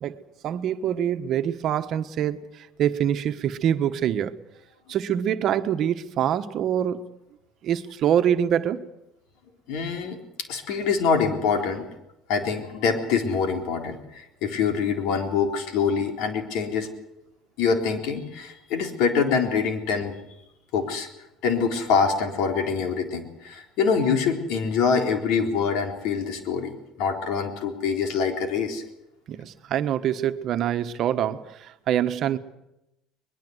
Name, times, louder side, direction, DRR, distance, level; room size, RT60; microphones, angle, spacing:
voice 1, 0.0-4.4 4.9-7.2 7.6-8.9 29.3-32.4, right 10 dB, 55° right, 1.3 m, -25 dB
voice 2, 9.7-10.2 10.5-11.9 12.3-16.9 17.6-20.2 20.7-21.1 21.4-28.8, left 5 dB, 75° left, 3.8 m, -25 dB
22.0 x 21.0 x 8.1 m
supercardioid pair, 105°, 0 cm